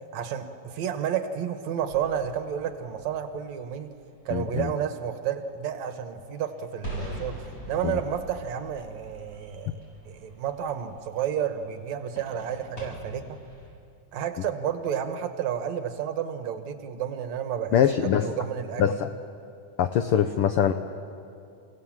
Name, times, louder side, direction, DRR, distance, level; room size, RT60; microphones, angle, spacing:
voice 1, 0.1-3.9 4.3-9.8 10.1-13.4 14.1-17.8 18.0-18.8, right 8 dB, 70° right, 8 dB, 2.4 m, -31 dB
sound 1, 1.9-13.7, right 1 dB, 25° left, 7.8 m, -44 dB
voice 2, 4.3-4.7 7.8-7.9 17.7-18.3 18.8-19.1 19.8-20.7, left 9 dB, 80° left, 8 dB, 1.2 m, -23 dB
29.5 x 17.0 x 7.4 m, 2.5 s
omnidirectional pair, 3.4 m